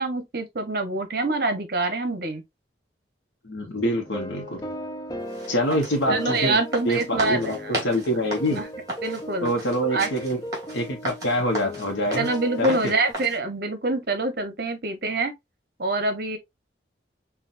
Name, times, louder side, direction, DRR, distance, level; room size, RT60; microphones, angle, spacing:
voice 1, 0.0-2.4 6.1-7.8 8.6-8.7 9.0-9.5 9.9-10.1 12.2-15.3 15.8-16.4, right 2 dB, 55° right, 0.8 m, -25 dB
voice 2, 3.4-4.7 5.5-6.6 6.8-8.6 9.4-10.4 10.7-12.3 12.6-12.9, equal, 90° left, 0.9 m, -25 dB
sound 1, 3.9-13.1, equal, 20° left, 0.5 m, -37 dB
sound 2, 5.3-13.4, right 1 dB, 20° right, 2.3 m, -35 dB
5.7 x 2.3 x 2.5 m
head